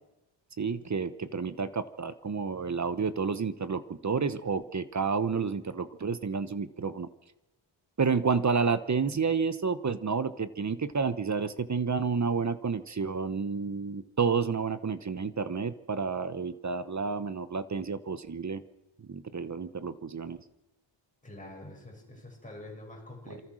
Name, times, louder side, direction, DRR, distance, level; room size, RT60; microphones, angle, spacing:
voice 1, 0.6-7.1 8.0-18.6 19.1-20.4 23.3-23.4, right 5 dB, 35° right, 13 dB, 1.0 m, -30 dB
voice 2, 21.2-23.4, left 1 dB, 15° left, -1 dB, 7.2 m, -46 dB
27.5 x 24.0 x 6.4 m, 1.0 s
wide cardioid pair, 155°, 48 cm